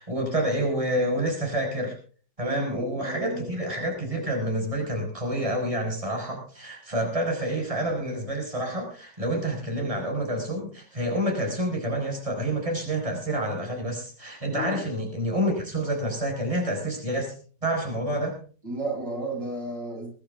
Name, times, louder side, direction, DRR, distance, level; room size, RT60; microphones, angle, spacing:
voice 1, 0.0-2.0 2.4-17.3 17.6-18.4, right 1 dB, 20° right, 1 dB, 5.5 m, -28 dB
voice 2, 2.4-3.5 14.5-14.8 18.6-20.1, right 1 dB, 90° right, -1 dB, 8.4 m, -33 dB
22.5 x 12.0 x 3.5 m, 0.40 s
omnidirectional pair, 1.9 m